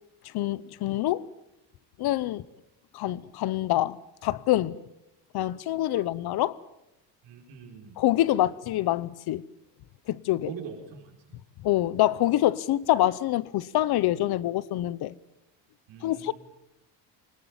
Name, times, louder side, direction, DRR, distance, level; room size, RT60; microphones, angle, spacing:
voice 1, 0.2-1.3 2.0-2.4 2.9-4.0 4.2-4.8 5.3-6.6 8.0-9.4 10.1-10.5 11.6-15.1 16.0-16.3, left 14 dB, 60° left, 1.0 m, -26 dB
voice 2, 7.2-7.9 10.5-11.4 15.9-16.3, right 7 dB, 90° right, 5.0 m, -42 dB
23.5 x 20.5 x 8.8 m
cardioid pair, 145°, 43 cm